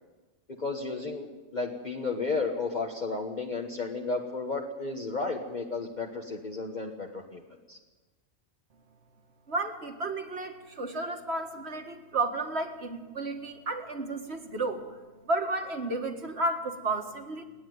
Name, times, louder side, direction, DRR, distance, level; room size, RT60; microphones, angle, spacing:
voice 1, 0.6-1.3 1.5-7.4 7.7-7.8, left 3 dB, 40° left, 0 dB, 1.5 m, -33 dB
voice 2, 9.5-14.8 15.3-17.4, right 2 dB, 60° right, 4 dB, 2.1 m, -32 dB
29.5 x 9.9 x 9.5 m, 1.2 s
omnidirectional pair, 1.2 m